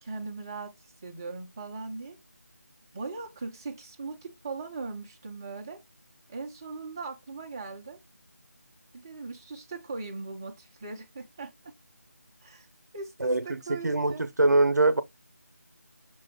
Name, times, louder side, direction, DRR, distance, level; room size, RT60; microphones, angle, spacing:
voice 1, 0.0-0.7 1.0-2.2 2.9-5.8 6.3-8.0 8.9-11.7 12.4-12.7 12.9-14.2, right 3 dB, 15° right, 0.4 m, -39 dB
voice 2, 13.8-15.0, right 2 dB, 90° right, 0.6 m, -22 dB
6.0 x 2.2 x 3.6 m
figure-of-eight pair, 165°, 9 cm